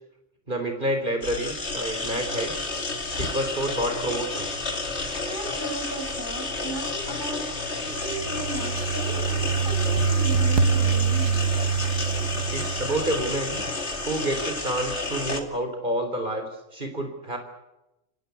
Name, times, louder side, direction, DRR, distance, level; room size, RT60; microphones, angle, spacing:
voice 1, 0.5-2.5 3.2-4.6 12.5-13.6 14.1-17.4, right 1 dB, 45° right, 5 dB, 3.8 m, -29 dB
sound 1, 1.2-15.4, left 3 dB, 65° left, 2.7 m, -31 dB
voice 2, 5.1-7.5 7.8-11.4, right 1 dB, 15° left, 3 dB, 6.3 m, -36 dB
sound 2, 7.9-13.6, right 5 dB, 85° right, 1.6 m, -25 dB
29.5 x 17.0 x 9.5 m, 0.95 s
omnidirectional pair, 1.2 m